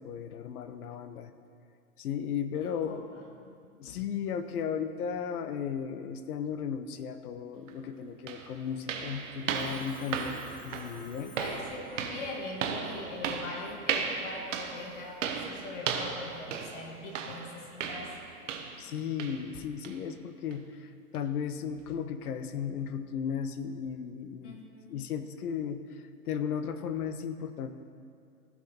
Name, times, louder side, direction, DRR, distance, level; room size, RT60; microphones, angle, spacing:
voice 1, 0.0-1.3 2.0-3.1 3.8-11.3 18.8-24.6 24.9-27.7, left 7 dB, 70° left, 10 dB, 0.8 m, -35 dB
voice 2, 2.6-3.5 11.2-18.1 24.4-24.9, left 2 dB, 50° left, 0 dB, 1.9 m, -42 dB
sound 1, 7.7-7.8 8.3-18.9 19.2-19.5 19.8-20.0 20.5-20.6 21.1-21.2, right 6 dB, 50° right, 0.9 m, -36 dB
Telephone, 9.5-12.3, left 4 dB, 25° left, 1.1 m, -54 dB
15.0 x 6.1 x 4.3 m, 2.3 s
hypercardioid pair, 165°, 47 cm